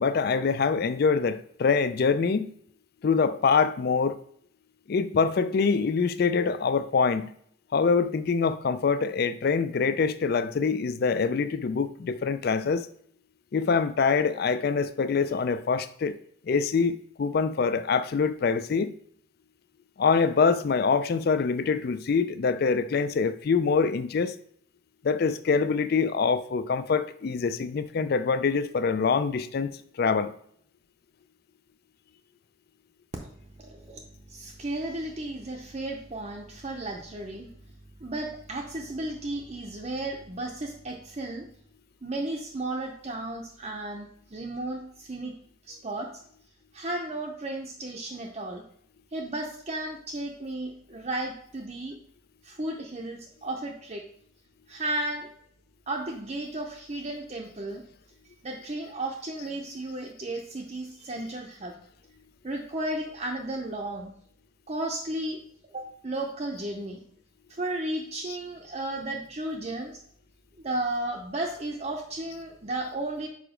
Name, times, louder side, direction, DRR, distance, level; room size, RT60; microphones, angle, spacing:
voice 1, 0.0-2.5 3.0-4.2 4.9-7.3 7.7-12.9 13.5-16.2 16.5-18.9 20.0-24.3 25.0-29.7 30.0-30.3 59.4-59.5 68.3-68.4, left 5 dB, 50° left, 0.3 m, -25 dB
voice 2, 33.2-41.5 42.0-45.3 45.7-46.1 46.7-48.6 49.1-52.0 52.4-54.0 54.7-55.3 55.9-57.8 58.4-61.8 62.4-64.1 64.7-65.4 65.7-67.0 67.5-70.0 70.6-73.3, right 1 dB, 30° right, 0.6 m, -34 dB
4.9 x 4.8 x 5.0 m
head